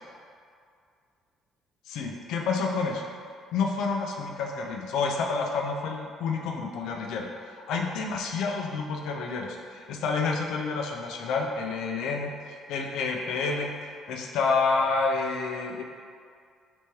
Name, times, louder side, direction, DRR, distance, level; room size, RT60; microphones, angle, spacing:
voice 1, 1.9-3.1 3.5-13.7 14.1-15.8, left 4 dB, 70° left, 1 dB, 0.4 m, -29 dB
3.4 x 3.0 x 3.0 m, 2.2 s
cardioid pair, 160°, 0 cm